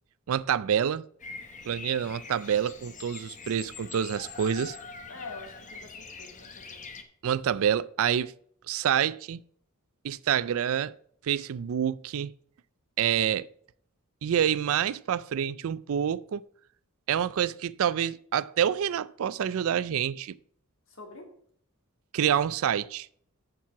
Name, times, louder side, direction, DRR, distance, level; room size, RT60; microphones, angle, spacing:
voice 1, 0.3-1.0 1.7-4.8 7.2-8.3 8.7-9.4 10.0-10.9 11.2-12.3 13.0-13.5 14.2-16.4 17.1-20.3 22.1-23.1, right 9 dB, 65° right, 0.4 m, -27 dB
Bird vocalization bird call bird song, 1.2-7.0, left 4 dB, 35° left, 0.9 m, -44 dB
voice 2, 5.1-6.8 20.9-21.3, left 3 dB, 65° left, 2.3 m, -45 dB
7.3 x 6.1 x 5.9 m
head